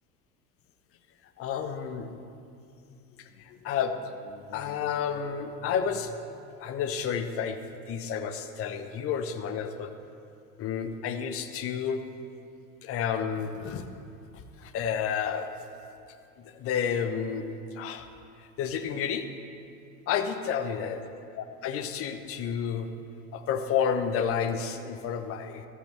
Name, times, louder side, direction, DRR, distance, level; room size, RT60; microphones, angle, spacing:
voice 1, 1.4-2.2 2.9-7.6 7.9-9.9 10.6-12.0 12.8-13.9 14.3-15.5 16.4-17.5 17.7-18.1 18.6-19.3 20.1-21.1 21.4-22.9 23.3-25.7, left 7 dB, 30° left, 9 dB, 0.7 m, -31 dB
13.0 x 8.9 x 3.1 m, 2.5 s
figure-of-eight pair, 75°, 45 cm